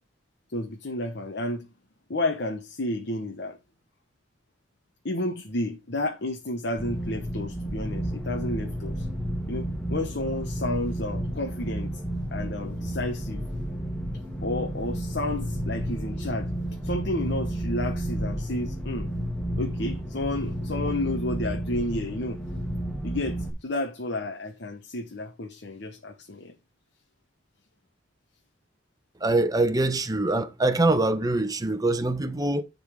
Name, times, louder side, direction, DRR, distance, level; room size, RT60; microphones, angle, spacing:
voice 1, 0.5-1.7 2.1-3.6 5.0-9.1 9.5-11.9 12.3-13.4 14.4-16.5 16.8-19.1 19.6-22.4 23.0-26.5, left 1 dB, 65° left, 1.0 m, -31 dB
sound 1, 6.8-23.5, right 1 dB, 5° left, 1.4 m, -31 dB
voice 2, 29.2-32.6, right 2 dB, 20° right, 1.0 m, -24 dB
10.5 x 4.0 x 4.9 m
head